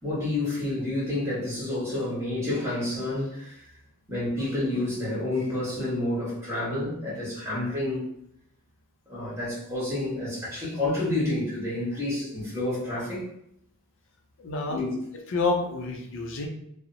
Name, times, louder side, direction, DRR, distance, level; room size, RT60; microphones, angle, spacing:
voice 1, 0.0-3.7 4.1-8.1 9.1-13.3 14.7-14.9, left 2 dB, 10° right, -8 dB, 1.3 m, -29 dB
voice 2, 14.4-14.8 15.3-16.5, left 3 dB, 60° left, 3 dB, 0.5 m, -28 dB
2.8 x 2.0 x 2.5 m, 0.72 s
head